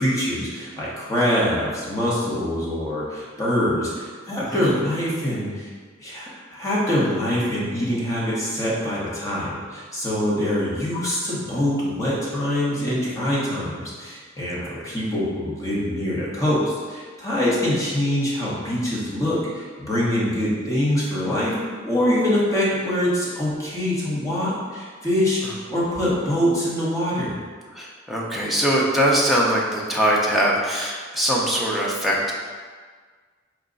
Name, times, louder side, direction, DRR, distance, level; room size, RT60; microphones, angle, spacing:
voice 1, 0.0-5.7 6.0-21.5 21.8-27.4, left 1 dB, 15° left, -7 dB, 1.0 m, -24 dB
voice 2, 27.7-32.3, equal, ahead, -5 dB, 0.6 m, -22 dB
4.7 x 2.2 x 3.8 m, 1.6 s
head